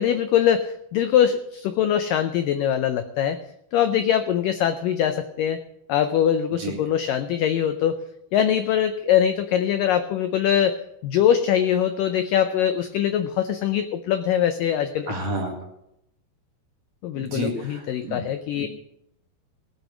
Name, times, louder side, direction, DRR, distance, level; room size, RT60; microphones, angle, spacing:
voice 1, 0.0-3.4 3.7-5.6 5.9-8.0 8.3-15.1 17.0-18.7, left 9 dB, 85° left, 8 dB, 1.9 m, -22 dB
voice 2, 15.1-15.5 17.2-18.2 18.5-18.7, right 1 dB, 50° right, 0 dB, 2.7 m, -30 dB
19.0 x 7.4 x 6.1 m, 0.80 s
omnidirectional pair, 4.8 m